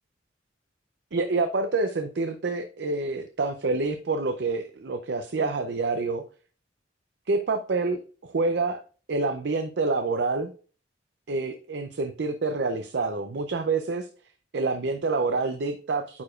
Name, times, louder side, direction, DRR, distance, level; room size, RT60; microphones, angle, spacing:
voice 1, 1.1-6.2 7.3-8.8 9.1-10.5 11.3-14.1 14.5-16.2, right 3 dB, 65° right, 8 dB, 0.5 m, -27 dB
9.4 x 4.8 x 2.4 m, 0.38 s
head